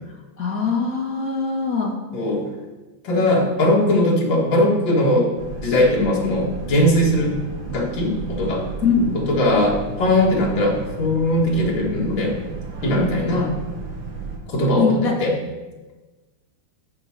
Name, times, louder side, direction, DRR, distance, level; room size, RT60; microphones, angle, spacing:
voice 1, 0.4-1.9 8.8-9.2 14.8-15.2, left 5 dB, 50° left, -2 dB, 2.2 m, -21 dB
voice 2, 2.1-2.4 3.0-5.3 5.6-7.4 7.7-8.6 9.1-12.3 12.8-13.5 14.5-15.3, left 1 dB, 75° left, -3 dB, 2.3 m, -19 dB
Boat Water vehicle, 5.4-14.4, right 3 dB, 80° right, 2.1 m, -34 dB
13.5 x 4.9 x 4.3 m, 1.2 s
omnidirectional pair, 2.1 m